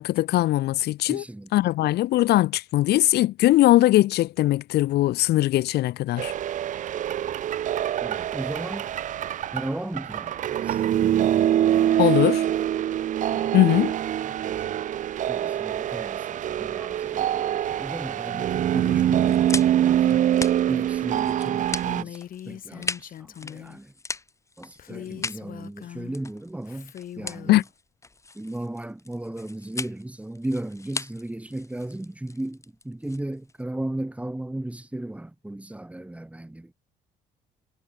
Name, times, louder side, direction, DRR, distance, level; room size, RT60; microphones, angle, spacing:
voice 1, 0.0-1.2 1.5-6.3 12.0-12.4 13.5-13.9 27.5-27.6, left 15 dB, 75° left, 1.9 m, -20 dB
voice 2, 1.1-1.5 8.0-8.9 9.5-10.8 11.9-12.6 13.3-14.7 15.3-20.3 20.7-23.9 24.6-27.6 28.3-36.7, right 1 dB, 10° right, 7.8 m, -36 dB
sound 1, 6.2-22.0, right 11 dB, 50° right, 0.6 m, -24 dB
sound 2, 18.9-33.6, left 3 dB, 15° left, 2.1 m, -38 dB
Female speech woman speaking, 21.9-23.8 24.8-26.2 26.7-27.6, left 10 dB, 55° left, 3.2 m, -41 dB
cardioid pair, 110°, 17 cm